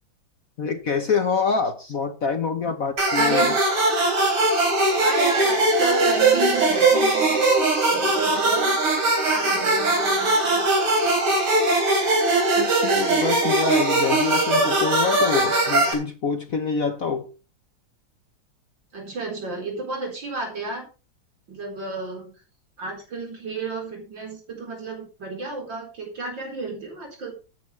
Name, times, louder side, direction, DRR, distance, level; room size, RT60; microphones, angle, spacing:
voice 1, 0.6-3.5 12.6-17.3, left 5 dB, 50° left, 1.2 m, -26 dB
sound 1, 3.0-15.9, right 2 dB, 85° right, 4.6 m, -20 dB
voice 2, 3.2-3.6 4.9-7.5 7.9-8.8 9.2-10.7 18.9-20.9 21.5-22.3 22.8-27.3, right 3 dB, 60° right, 5.2 m, -31 dB
14.0 x 10.5 x 3.4 m
omnidirectional pair, 2.3 m